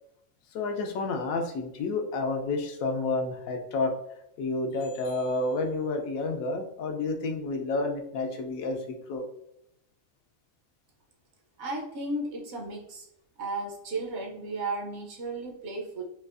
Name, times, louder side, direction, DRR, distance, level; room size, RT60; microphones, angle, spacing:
voice 1, 0.5-3.9 4.4-9.3, left 3 dB, 90° left, 4 dB, 1.0 m, -30 dB
voice 2, 11.6-13.1 13.4-16.0, right 2 dB, 60° right, 1 dB, 0.9 m, -34 dB
4.2 x 2.3 x 2.4 m, 0.75 s
omnidirectional pair, 1.4 m